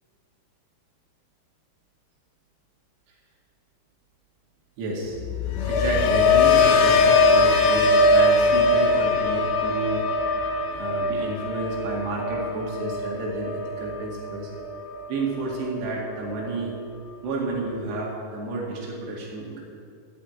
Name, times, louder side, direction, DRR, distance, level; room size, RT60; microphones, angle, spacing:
voice 1, 4.8-5.2 5.7-10.0 10.7-14.5 15.1-16.8 17.2-19.6, right 2 dB, 65° right, -3 dB, 4.0 m, -30 dB
sound 1, 5.2-15.3 15.6-16.1, left 3 dB, 75° left, 2.5 m, -21 dB
14.5 x 5.8 x 9.1 m, 2.3 s
omnidirectional pair, 5.3 m